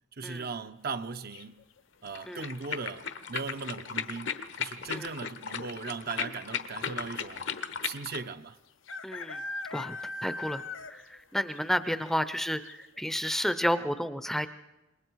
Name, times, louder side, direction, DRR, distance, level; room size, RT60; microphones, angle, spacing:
voice 1, 0.1-1.6 2.0-7.5 7.8-8.6, right 4 dB, 55° right, 0.7 m, -38 dB
sound 1, 1.3-1.8 3.6-4.0 4.3-4.4 4.6-5.1 5.9-6.0 6.2-6.3 7.8-7.9 8.9-11.2 11.5-11.6 12.1-12.2 12.7-12.8, left 2 dB, 90° left, 1.0 m, -39 dB
sound 2, 2.1-8.3, left 7 dB, 65° left, 1.1 m, -36 dB
voice 2, 9.0-9.4 9.7-10.0 10.2-14.5, equal, ahead, 0.6 m, -31 dB
27.0 x 22.0 x 4.7 m
head